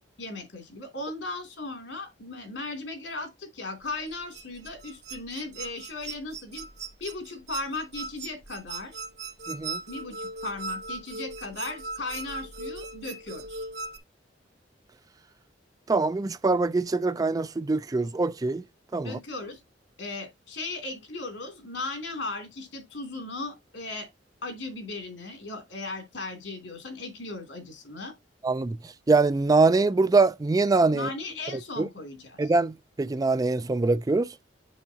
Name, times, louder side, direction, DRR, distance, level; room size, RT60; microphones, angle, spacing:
voice 1, 0.2-6.7 7.0-9.0 9.9-13.7 19.0-19.6 20.0-24.1 24.4-28.1 30.9-32.5, left 2 dB, 85° left, 2.9 m, -37 dB
sound 1, 3.9-14.0, right 3 dB, 65° right, 1.1 m, -38 dB
voice 2, 9.5-9.8 15.9-18.6 18.9-19.2 28.4-28.8 29.1-31.1 31.8-31.9 32.4-34.3, right 3 dB, 20° right, 0.3 m, -23 dB
7.1 x 6.6 x 2.8 m
head